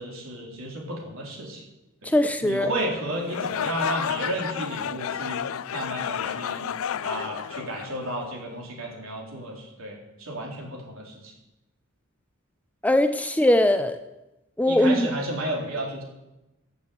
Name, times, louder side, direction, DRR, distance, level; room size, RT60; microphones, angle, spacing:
voice 1, 0.0-1.6 2.0-2.1 2.4-6.6 7.0-11.3 14.7-16.0, right 1 dB, 70° right, -1 dB, 4.0 m, -33 dB
voice 2, 2.0-2.7 12.8-14.0 14.6-15.1, left 1 dB, 5° left, 9 dB, 0.6 m, -21 dB
sound 1, 3.2-8.4, left 8 dB, 70° left, 0.4 m, -31 dB
13.5 x 7.3 x 8.2 m, 0.99 s
head